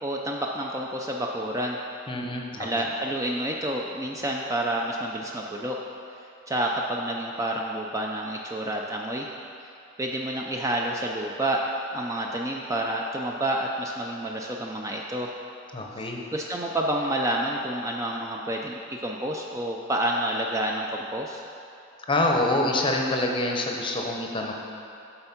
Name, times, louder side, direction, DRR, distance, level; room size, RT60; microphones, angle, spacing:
voice 1, 0.0-1.8 2.6-5.8 6.5-9.3 10.0-11.6 11.9-15.3 16.0-21.4, right 1 dB, 15° right, 0 dB, 0.4 m, -29 dB
voice 2, 2.1-2.8 15.7-16.2 22.1-24.5, left 1 dB, 25° left, 0 dB, 0.7 m, -26 dB
7.8 x 4.4 x 5.8 m, 2.7 s
head